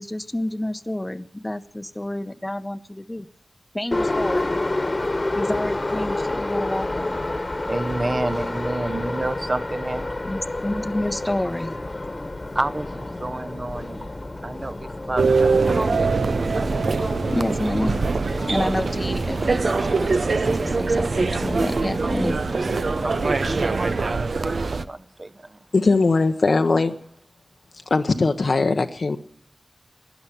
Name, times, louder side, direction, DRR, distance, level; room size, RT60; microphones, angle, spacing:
voice 1, 0.0-3.3 3.7-4.6 5.3-7.2 10.3-11.8 17.3-18.0 18.3-22.4, left 1 dB, 15° left, 0.7 m, -29 dB
Subway metro underground, 3.9-23.7, left 2 dB, 35° left, 1.3 m, -30 dB
voice 2, 7.7-10.2 12.5-14.1 14.4-16.7 22.0-22.4 23.0-25.6, right 2 dB, 35° right, 0.9 m, -30 dB
sound 1, 15.2-24.8, right 4 dB, 80° right, 0.6 m, -23 dB
voice 3, 25.7-26.9 27.9-29.2, left 3 dB, 70° left, 0.8 m, -20 dB
12.5 x 10.5 x 9.8 m
wide cardioid pair, 80°, 0 cm